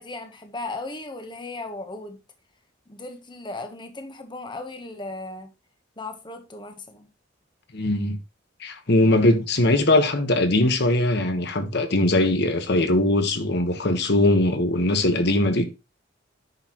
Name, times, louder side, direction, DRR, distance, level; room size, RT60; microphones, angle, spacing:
voice 1, 0.0-2.2 2.9-5.5 6.0-7.1, left 2 dB, 25° left, 1.1 m, -36 dB
voice 2, 7.7-8.2 8.6-15.7, left 1 dB, 55° left, 1.3 m, -21 dB
9.6 x 6.5 x 3.0 m
head